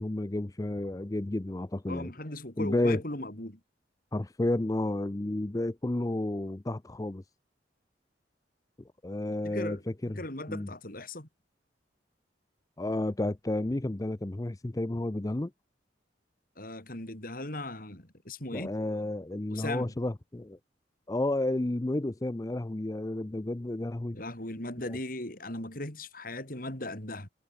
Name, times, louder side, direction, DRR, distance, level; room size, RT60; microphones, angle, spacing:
voice 1, 0.0-2.1 2.6-3.0 4.1-7.2 9.0-9.8 10.0-10.7 12.8-15.5 18.5-20.6 21.1-24.2 24.9-25.0, left 1 dB, 20° left, 0.5 m, -31 dB
voice 2, 1.9-3.6 9.4-9.8 10.1-11.3 16.6-18.7 19.5-19.9 24.1-27.3, left 1 dB, 50° left, 4.9 m, -38 dB
head